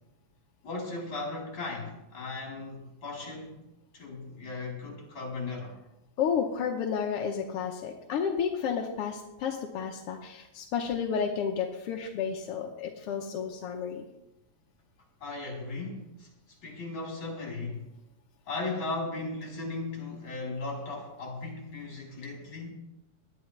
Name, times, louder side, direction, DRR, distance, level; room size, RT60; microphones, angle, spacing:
voice 1, 0.6-3.6 3.9-5.8 15.2-17.8 18.5-22.7, left 3 dB, 40° left, -2 dB, 4.5 m, -37 dB
voice 2, 6.2-14.0, left 7 dB, 65° left, 1 dB, 1.6 m, -31 dB
19.5 x 11.5 x 3.3 m, 0.91 s
omnidirectional pair, 3.4 m